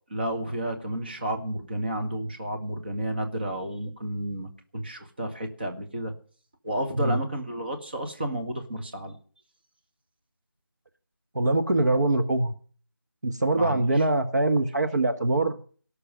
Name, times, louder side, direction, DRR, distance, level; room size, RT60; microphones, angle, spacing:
voice 1, 0.1-6.1 6.6-9.2 13.5-14.0, right 1 dB, 25° right, 5 dB, 1.7 m, -31 dB
voice 2, 11.3-12.5 13.2-15.6, right 2 dB, 50° right, 6 dB, 1.5 m, -23 dB
17.5 x 6.8 x 9.1 m, 0.43 s
figure-of-eight pair, 175°, 12 cm